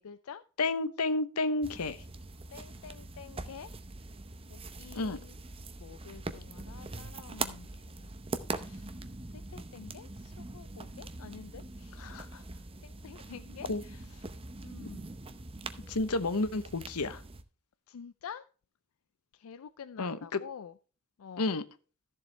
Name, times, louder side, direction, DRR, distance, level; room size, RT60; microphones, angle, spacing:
voice 1, 0.0-0.4 2.5-3.7 4.5-5.4 5.8-8.1 8.5-8.9 9.3-14.3 14.6-15.1 17.9-18.4 19.3-20.7 21.2-21.5, left 7 dB, 65° left, 0.4 m, -48 dB
voice 2, 0.6-2.0 4.9-5.2 13.7-13.8 15.9-17.2 20.0-20.4 21.4-21.6, left 2 dB, 85° left, 0.9 m, -30 dB
sound 1, 1.6-17.4, right 3 dB, 25° right, 0.7 m, -43 dB
13.5 x 7.2 x 3.3 m
head